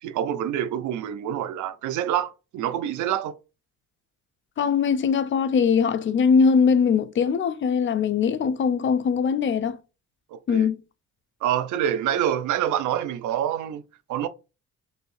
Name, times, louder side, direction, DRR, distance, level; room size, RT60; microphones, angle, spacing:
voice 1, 0.0-3.4 10.3-10.7 11.4-13.8 14.1-14.3, right 10 dB, 75° right, 0.5 m, -26 dB
voice 2, 4.6-9.8 10.5-10.8, left 6 dB, 40° left, 0.4 m, -21 dB
3.1 x 2.7 x 3.0 m
cardioid pair, 90°, 30 cm